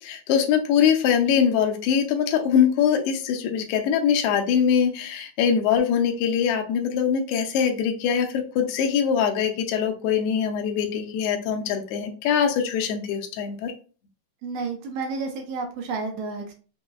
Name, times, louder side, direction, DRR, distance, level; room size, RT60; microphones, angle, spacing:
voice 1, 0.0-13.7, left 8 dB, 85° left, 3 dB, 1.3 m, -23 dB
voice 2, 14.4-16.5, right 4 dB, 75° right, 2 dB, 1.5 m, -31 dB
5.0 x 2.1 x 2.2 m, 0.37 s
omnidirectional pair, 3.3 m